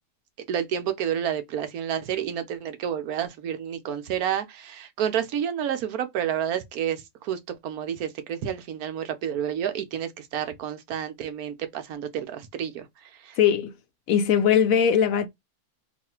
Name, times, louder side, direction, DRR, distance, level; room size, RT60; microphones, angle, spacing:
voice 1, 0.5-12.9 13.2-13.4, right 9 dB, 75° right, 1.1 m, -30 dB
voice 2, 13.4-13.8 14.1-15.3, left 8 dB, 70° left, 1.0 m, -20 dB
3.1 x 2.4 x 4.2 m
omnidirectional pair, 1.6 m